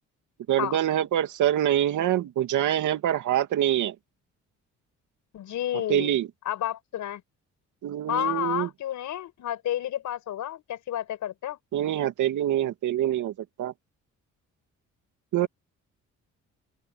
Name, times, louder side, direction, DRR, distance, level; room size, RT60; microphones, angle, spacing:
voice 1, 0.5-3.9 5.9-6.3 7.8-8.7 11.7-13.3 13.6-13.7 15.3-15.5, right 11 dB, 75° right, 2.7 m, -25 dB
voice 2, 5.3-6.1 6.5-7.2 8.1-11.6 15.4-15.5, left 12 dB, 75° left, 5.8 m, -31 dB
open air
cardioid pair, 90°, 30 cm